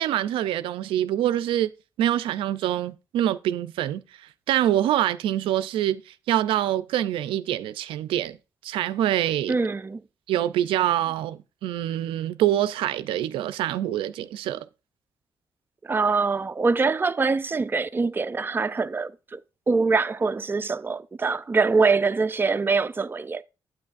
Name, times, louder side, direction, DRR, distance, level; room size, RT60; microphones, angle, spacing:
voice 1, 0.0-1.7 2.0-8.4 8.6-9.5 10.3-14.7, right 12 dB, 85° right, 0.4 m, -25 dB
voice 2, 9.5-10.0 15.8-19.4 19.7-23.4, right 4 dB, 25° right, 0.4 m, -24 dB
9.5 x 8.7 x 2.5 m
cardioid pair, 65°, 9 cm